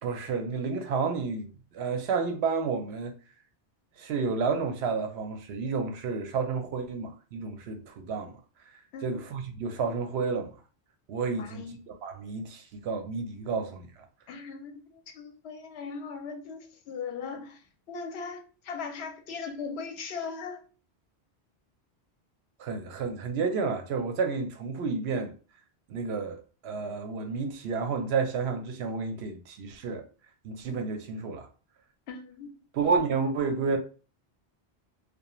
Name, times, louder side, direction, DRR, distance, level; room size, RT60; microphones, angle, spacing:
voice 1, 0.0-3.1 4.0-8.3 9.0-10.5 11.1-13.9 22.6-25.3 25.9-26.4 26.6-30.0 30.4-31.5 32.7-33.8, right 4 dB, 75° right, 0.8 m, -30 dB
voice 2, 8.9-9.2 11.4-11.8 14.3-20.6 32.1-32.6, left 5 dB, 75° left, 0.8 m, -39 dB
2.4 x 2.2 x 2.9 m
omnidirectional pair, 1.1 m